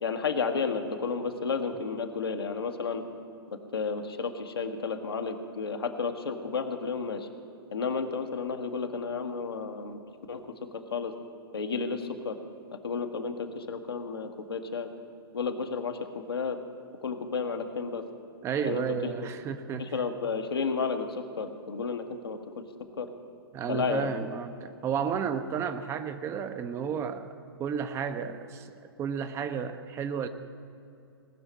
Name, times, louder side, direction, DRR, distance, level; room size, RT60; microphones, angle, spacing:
voice 1, 0.0-3.0 3.5-7.3 7.7-10.0 10.3-10.4 10.9-11.1 11.5-12.4 12.8-14.9 15.3-16.6 17.0-18.0 18.6-18.8 19.8-22.4 23.0-23.1 23.7-24.1, left 5 dB, 70° left, 5 dB, 1.3 m, -32 dB
voice 2, 18.4-19.9 23.5-27.3 27.6-30.3, right 7 dB, 20° right, 9 dB, 0.6 m, -32 dB
19.0 x 6.6 x 8.6 m, 2.7 s
figure-of-eight pair, 110°, 13 cm